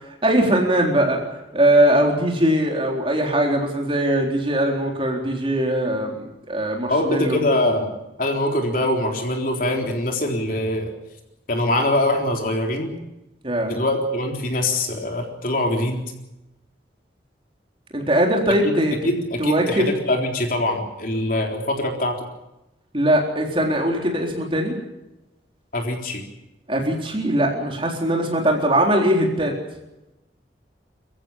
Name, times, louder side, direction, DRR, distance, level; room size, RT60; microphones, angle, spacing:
voice 1, 0.2-1.2 1.5-7.4 13.4-13.7 17.9-18.9 19.4-19.9 22.9-24.8 26.7-29.5, right 1 dB, 30° right, 1 dB, 3.9 m, -20 dB
voice 2, 6.9-7.9 8.2-10.9 11.5-12.9 13.7-16.1 18.6-18.8 19.0-22.2 25.7-26.2, left 1 dB, 50° left, 2 dB, 3.8 m, -23 dB
25.0 x 15.0 x 8.8 m, 0.96 s
head